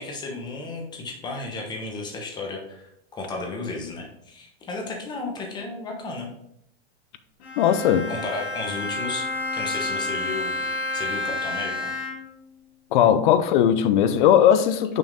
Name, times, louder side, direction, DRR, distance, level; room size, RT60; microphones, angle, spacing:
voice 1, 0.0-2.8 3.1-6.3 8.1-9.3 9.5-10.6 10.9-11.9, left 3 dB, 15° left, 1.0 m, -33 dB
Bowed string instrument, 7.4-12.5, left 2 dB, 80° left, 1.7 m, -30 dB
voice 2, 7.6-8.1 12.9-15.0, left 9 dB, 50° left, 0.6 m, -18 dB
6.1 x 4.4 x 3.6 m
supercardioid pair, 165°, 32 cm